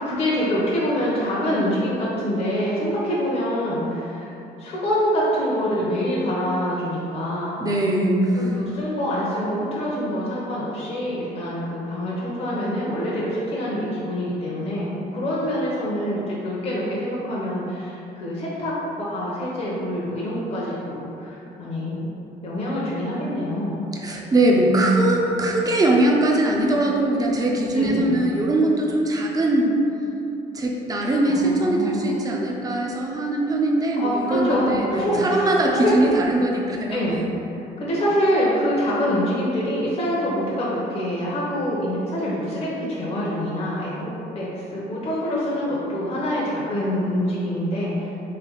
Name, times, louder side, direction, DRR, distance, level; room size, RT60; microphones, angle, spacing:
voice 1, 0.0-4.3 4.6-7.6 8.3-22.1 22.4-23.8 24.7-25.0 25.3-25.5 27.7-28.1 31.3-32.1 33.9-36.1 36.9-37.2 37.6-48.1, equal, 35° left, -7 dB, 0.8 m, -25 dB
voice 2, 7.6-8.6 24.0-29.8 30.5-37.0, right 1 dB, 20° right, -1 dB, 0.6 m, -21 dB
3.3 x 3.1 x 3.9 m, 2.8 s
cardioid pair, 110°, 17 cm